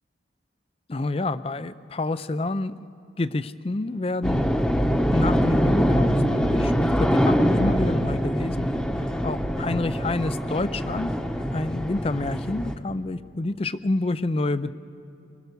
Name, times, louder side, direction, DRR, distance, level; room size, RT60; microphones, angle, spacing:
voice 1, 0.9-2.7 3.2-4.5 5.1-8.7 9.2-11.1 11.5-14.7, left 2 dB, 30° left, 14 dB, 0.5 m, -28 dB
sound 1, 4.2-12.7, equal, 5° left, 1.0 m, -23 dB
26.5 x 22.5 x 6.8 m, 2.6 s
head